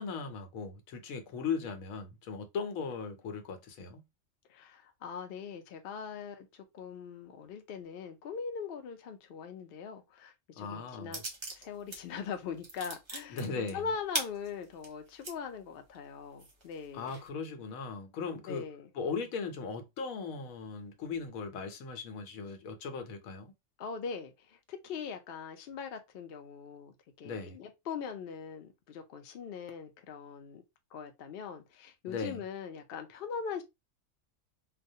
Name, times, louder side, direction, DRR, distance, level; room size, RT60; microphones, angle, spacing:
voice 1, 0.0-4.1 10.6-11.2 13.3-13.9 16.9-18.7 18.9-23.5 27.2-27.6 32.1-32.4, left 5 dB, 90° left, 1.1 m, -38 dB
voice 2, 4.5-11.2 11.5-17.1 18.5-18.9 23.8-30.6 30.9-33.6, left 6 dB, 60° left, 0.6 m, -41 dB
sound 1, 11.1-12.0 12.3-15.3 15.9-16.0 16.4-17.3, right 2 dB, 40° right, 0.4 m, -39 dB
2.3 x 2.2 x 2.6 m
omnidirectional pair, 1.4 m